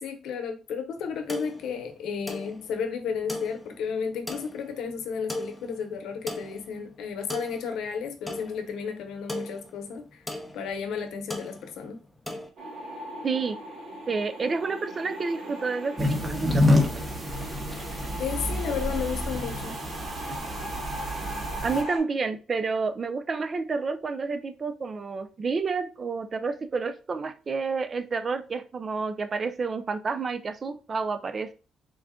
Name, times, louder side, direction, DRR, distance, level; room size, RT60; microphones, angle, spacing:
voice 1, 0.0-10.2 10.5-12.0 18.2-19.8, left 6 dB, 80° left, 0.7 m, -33 dB
sound 1, 1.0-12.5, left 1 dB, 5° left, 0.7 m, -39 dB
sound 2, 12.6-22.0, right 1 dB, 65° right, 1.3 m, -39 dB
voice 2, 13.2-13.6 14.1-16.8 21.6-31.5, right 4 dB, 40° right, 0.4 m, -29 dB
sound 3, 16.0-21.8, left 1 dB, 25° right, 0.9 m, -28 dB
3.8 x 2.2 x 3.5 m
cardioid pair, 90°, 0 cm